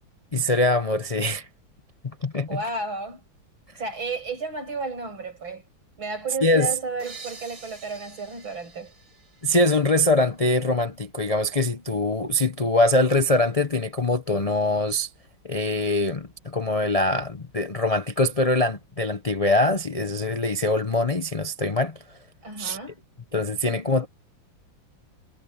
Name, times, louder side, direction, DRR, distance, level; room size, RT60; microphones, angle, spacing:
voice 1, 0.3-1.5 2.2-2.6 6.4-6.7 9.4-15.1 15.4-22.2 22.6-22.8 23.3-24.1, left 2 dB, 60° left, 0.3 m, -23 dB
voice 2, 2.5-3.2 3.8-5.6 6.0-8.9 22.4-23.0 23.7-23.8, right 3 dB, 80° right, 7.9 m, -32 dB
sound 1, 7.0-10.6, right 3 dB, 45° right, 5.5 m, -47 dB
omnidirectional pair, 2.2 m